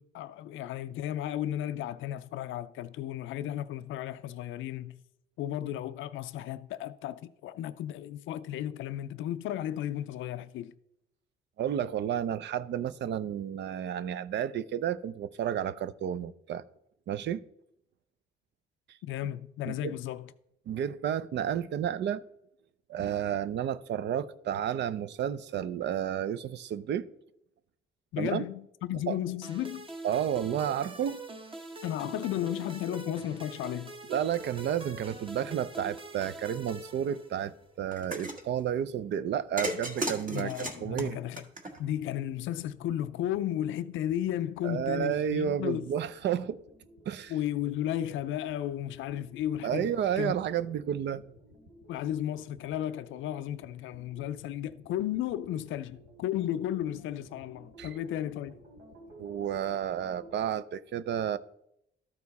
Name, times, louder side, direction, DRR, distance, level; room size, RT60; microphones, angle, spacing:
voice 1, 0.0-5.0 5.4-10.7 19.0-20.3 28.1-29.9 31.8-33.9 40.3-41.4 41.8-45.9 47.3-50.3 51.9-58.6, left 12 dB, 80° left, 0.4 m, -34 dB
voice 2, 11.6-16.6 17.1-17.4 19.6-20.0 20.7-22.2 22.9-27.1 28.2-28.4 29.1-29.2 30.0-31.2 34.1-40.5 40.8-41.2 44.6-46.6 47.1-47.3 49.6-51.2 57.8-57.9 59.2-61.4, right 9 dB, 65° right, 0.5 m, -31 dB
sound 1, 29.4-37.7, right 2 dB, 25° right, 1.0 m, -44 dB
sound 2, 37.9-38.4 39.6-42.1, right 1 dB, 45° right, 1.6 m, -35 dB
sound 3, 41.7-60.5, right 1 dB, 80° right, 2.9 m, -55 dB
13.0 x 4.5 x 4.1 m
cardioid pair, 90°, 20 cm